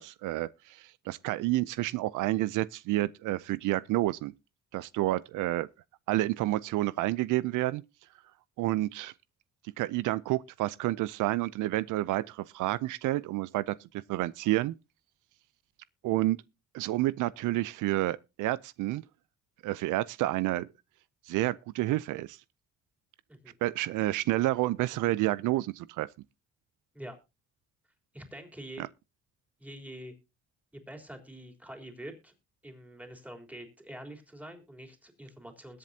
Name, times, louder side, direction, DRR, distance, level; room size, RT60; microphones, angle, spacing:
voice 1, 0.0-4.3 4.7-5.7 6.1-7.8 8.6-9.1 9.8-13.8 14.1-14.7 16.0-16.4 16.7-19.0 19.6-20.7 21.3-22.4 23.6-26.1 28.8-28.9, right 17 dB, 90° right, 0.5 m, -29 dB
voice 2, 28.1-28.9 29.6-30.1 30.7-32.3 32.6-35.8, right 1 dB, 5° right, 3.5 m, -45 dB
21.0 x 7.6 x 2.8 m
cardioid pair, 90°, 30 cm